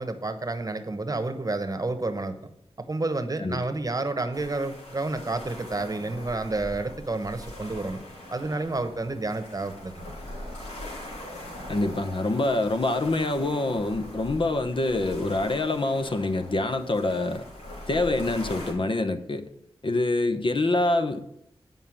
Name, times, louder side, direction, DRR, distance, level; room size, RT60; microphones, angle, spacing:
voice 1, 0.0-2.4 2.8-8.0 8.3-10.1, right 2 dB, 35° right, 1.0 m, -30 dB
sound 1, 4.3-18.7, left 1 dB, 90° left, 3.3 m, -41 dB
voice 2, 11.7-17.4 17.9-19.5 19.8-21.2, left 2 dB, 55° left, 0.9 m, -25 dB
9.3 x 5.5 x 7.1 m
wide cardioid pair, 70°, 10 cm